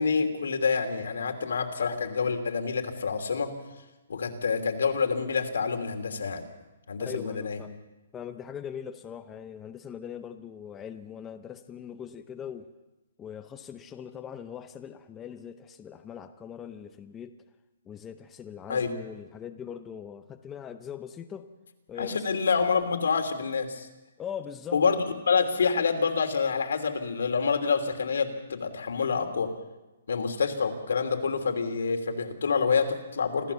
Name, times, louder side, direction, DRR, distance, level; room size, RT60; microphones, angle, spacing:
voice 1, 0.0-3.5 4.1-6.4 6.9-7.6 18.7-18.9 22.0-23.9 24.7-29.5 30.1-33.5, left 5 dB, 85° left, 5 dB, 3.0 m, -27 dB
voice 2, 7.0-7.7 8.1-12.7 13.2-17.3 17.9-21.5 21.9-22.2 24.2-24.8, left 8 dB, 10° left, 7 dB, 0.7 m, -41 dB
26.0 x 14.5 x 7.0 m, 1.1 s
hypercardioid pair, 175°, 0 cm